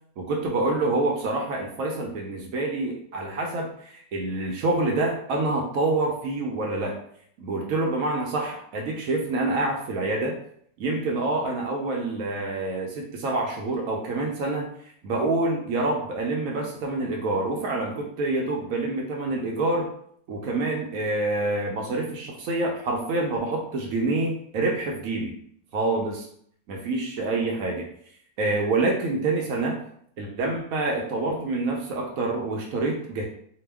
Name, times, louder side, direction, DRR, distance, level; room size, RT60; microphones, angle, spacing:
voice 1, 0.2-7.0 7.4-10.4 10.8-14.7 15.0-19.9 20.3-25.4 25.7-26.2 26.7-27.9 28.4-29.8 30.2-33.2, right 2 dB, 70° right, 0 dB, 0.9 m, -27 dB
2.8 x 2.2 x 3.3 m, 0.63 s
omnidirectional pair, 1.6 m